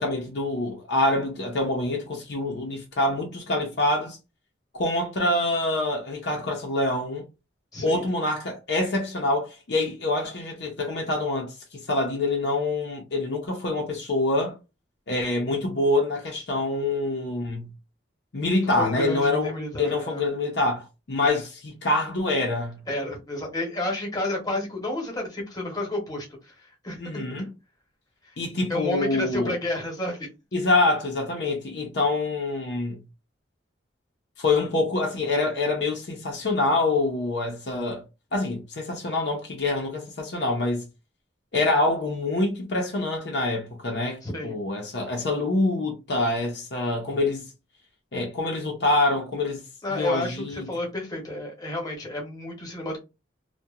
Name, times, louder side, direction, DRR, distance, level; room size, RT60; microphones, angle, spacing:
voice 1, 0.0-4.2 4.7-7.2 7.8-14.6 15.1-17.7 18.3-22.8 27.0-27.5 28.4-29.6 30.5-33.0 34.4-38.0 38.3-40.8 41.5-47.4 48.1-49.6 49.9-50.7, left 2 dB, 60° left, 0.6 m, -26 dB
voice 2, 7.7-8.0 18.8-20.2 22.9-26.5 26.8-27.2 28.7-30.3 44.2-44.5 49.8-53.0, left 1 dB, 20° left, 1.0 m, -31 dB
2.8 x 2.1 x 2.3 m
head